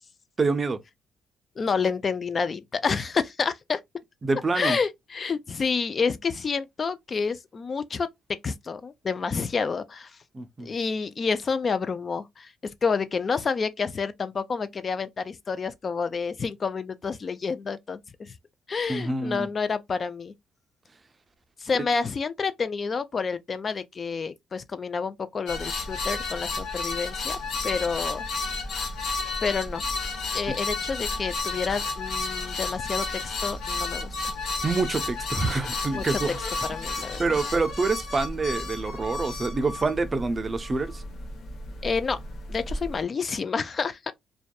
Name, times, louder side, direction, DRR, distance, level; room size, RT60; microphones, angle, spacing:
voice 1, 0.4-0.8 4.2-4.8 10.3-10.7 18.9-19.5 34.6-36.4 37.2-41.0, right 3 dB, 30° right, 0.4 m, -26 dB
voice 2, 1.6-3.8 4.5-10.2 10.6-12.5 12.8-18.3 18.7-20.3 21.6-28.2 29.4-29.8 30.3-34.1 35.9-36.2 36.7-37.2 41.8-42.2 42.5-44.1, left 5 dB, 40° left, 0.3 m, -29 dB
sound 1, 25.5-43.0, left 3 dB, 65° left, 0.7 m, -32 dB
2.6 x 2.2 x 2.2 m
cardioid pair, 90°, 0 cm